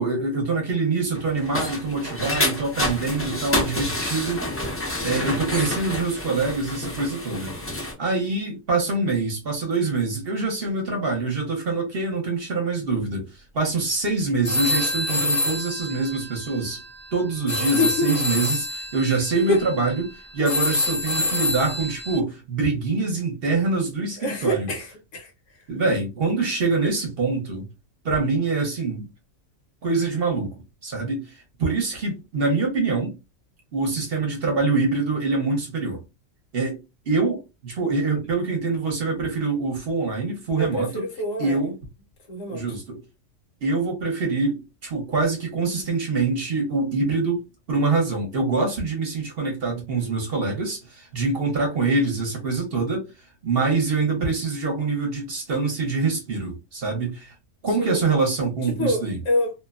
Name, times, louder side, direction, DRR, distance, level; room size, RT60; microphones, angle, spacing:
voice 1, 0.0-4.4 5.0-7.5 8.0-16.8 17.1-24.7 25.7-27.7 28.0-29.1 29.8-30.5 30.8-33.2 33.7-36.0 36.5-36.8 37.1-41.0 41.4-41.7 42.5-43.0 43.6-47.4 47.7-53.1 53.4-57.3 57.6-59.2, right 3 dB, 50° right, 0.9 m, -25 dB
sound 1, 1.1-7.9, left 1 dB, 20° left, 0.4 m, -28 dB
sound 2, 14.5-22.2, left 1 dB, 50° left, 0.8 m, -27 dB
voice 2, 17.8-18.1 19.1-19.2 19.5-19.6 24.2-25.3 40.6-41.7 42.3-42.6 57.8-58.0 58.7-59.5, left 1 dB, 75° left, 1.2 m, -26 dB
2.7 x 2.1 x 2.3 m
omnidirectional pair, 1.4 m